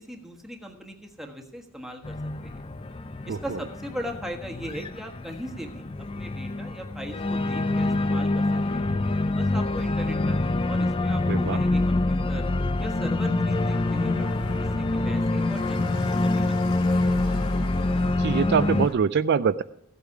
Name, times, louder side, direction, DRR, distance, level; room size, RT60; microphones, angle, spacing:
voice 1, 0.0-2.2 2.4-2.6 3.3-5.9 6.1-8.4 9.4-12.4 12.8-14.5 14.8-17.0, equal, ahead, 1 dB, 1.4 m, -39 dB
Organ, 2.0-18.9, left 2 dB, 25° left, 0.4 m, -26 dB
voice 2, 11.3-11.6 18.2-19.6, right 6 dB, 50° right, 13 dB, 0.3 m, -23 dB
sound 1, 13.5-18.9, left 2 dB, 80° left, 2.4 m, -41 dB
15.5 x 8.1 x 4.8 m, 0.81 s
head